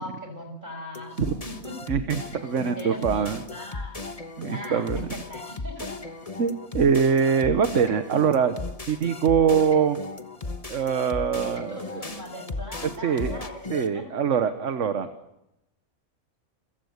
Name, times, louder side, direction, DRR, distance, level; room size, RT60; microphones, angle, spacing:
voice 1, 0.0-1.8 2.8-3.9 4.5-5.9 11.3-14.0, left 1 dB, 30° right, 4 dB, 6.2 m, -39 dB
sound 1, 0.9-13.9, left 3 dB, 25° left, 1.3 m, -36 dB
voice 2, 1.9-3.4 4.4-5.1 6.4-8.6 8.9-10.0 10.7-12.0 12.8-13.4 13.7-15.1, right 7 dB, 60° right, 9 dB, 1.4 m, -23 dB
28.5 x 15.5 x 8.1 m, 0.89 s
omnidirectional pair, 1.5 m